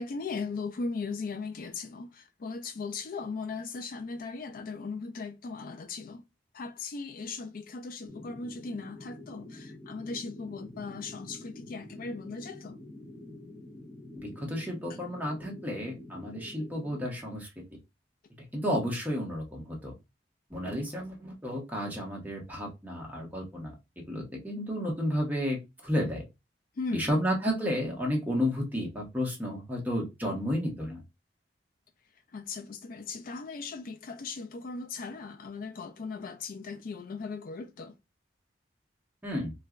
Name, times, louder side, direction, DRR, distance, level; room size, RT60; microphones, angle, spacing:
voice 1, 0.0-6.2 6.5-12.8 14.9-15.0 26.8-27.1 32.3-38.0, left 4 dB, 55° left, 0.4 m, -38 dB
sound 1, 8.1-17.1, left 1 dB, 10° left, 0.6 m, -47 dB
voice 2, 14.2-17.5 18.5-19.9 20.5-23.7 24.1-26.2 26.9-31.0 39.2-39.5, equal, 10° right, 1.2 m, -32 dB
4.4 x 2.2 x 2.4 m
head